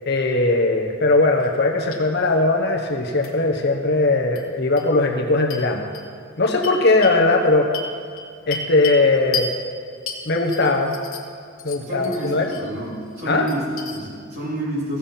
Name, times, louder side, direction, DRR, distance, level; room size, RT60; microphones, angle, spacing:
voice 1, 0.1-5.8 6.4-7.7 8.5-9.5 10.3-11.0 11.6-12.5 13.3-13.5, left 2 dB, 50° left, 3 dB, 1.0 m, -19 dB
sound 1, 1.4-1.6 1.9-2.0 3.2-3.3 4.3-4.4 4.8-4.9 5.5-5.6 5.9-6.0 6.6-7.2 7.7-9.0 9.3-9.5 10.1-11.3 11.6-12.6 13.0-14.0, left 4 dB, 80° left, 1.4 m, -32 dB
voice 2, 11.9-15.0, right 1 dB, 50° right, -6 dB, 3.6 m, -29 dB
15.0 x 7.2 x 5.7 m, 2.2 s
head